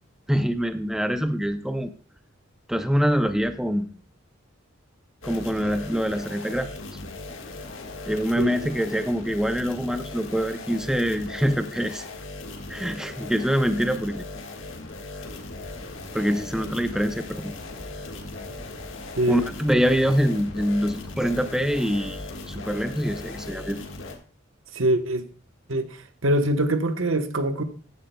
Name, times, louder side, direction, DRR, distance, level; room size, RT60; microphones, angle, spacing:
voice 1, 0.3-1.9 2.7-3.9 5.2-6.7 8.1-12.1 12.7-14.2 16.1-17.5 19.3-23.8, equal, 5° right, 0.5 m, -25 dB
sound 1, 5.2-24.2, left 2 dB, 70° left, 1.6 m, -38 dB
voice 2, 8.4-8.7 19.2-19.4 24.7-25.2 25.7-27.6, right 1 dB, 70° right, 1.0 m, -24 dB
sound 2, 15.4-23.4, equal, 35° left, 3.4 m, -46 dB
14.5 x 10.0 x 2.2 m
head